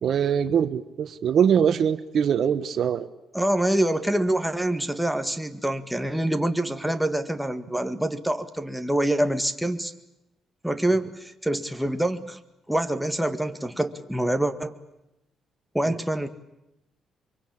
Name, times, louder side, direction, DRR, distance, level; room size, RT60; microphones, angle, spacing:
voice 1, 0.0-3.1 15.9-16.0, right 8 dB, 60° right, 12 dB, 1.2 m, -23 dB
voice 2, 3.3-9.9 10.6-12.4 12.7-14.7 15.7-16.3, right 1 dB, 5° right, 7 dB, 1.9 m, -26 dB
24.5 x 23.5 x 8.7 m, 0.90 s
cardioid pair, 90°, 0 cm